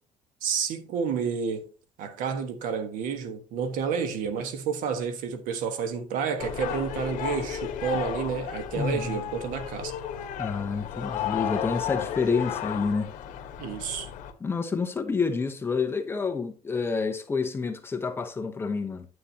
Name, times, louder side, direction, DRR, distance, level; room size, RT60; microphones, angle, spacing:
voice 1, 0.4-1.7 2.0-9.9 13.6-14.1, right 6 dB, 85° right, 1.5 m, -30 dB
sound 1, 6.4-14.3, left 9 dB, 75° left, 1.3 m, -34 dB
voice 2, 8.7-9.2 10.4-13.1 14.4-19.1, left 4 dB, 15° left, 0.9 m, -28 dB
9.7 x 8.4 x 2.9 m
cardioid pair, 165°, 13 cm